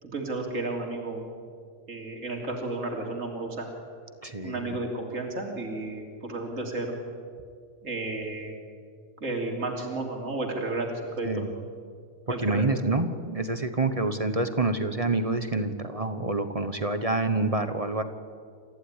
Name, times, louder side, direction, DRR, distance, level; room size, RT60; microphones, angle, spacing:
voice 1, 0.0-1.3 1.9-3.7 4.4-7.0 7.8-8.5 9.2-10.9 11.2-11.5 12.3-12.6, right 2 dB, 50° right, 1 dB, 3.4 m, -32 dB
voice 2, 4.2-4.8 11.2-11.5 12.3-18.0, right 2 dB, 25° right, 9 dB, 1.1 m, -27 dB
28.5 x 15.0 x 10.0 m, 2.1 s
omnidirectional pair, 1.7 m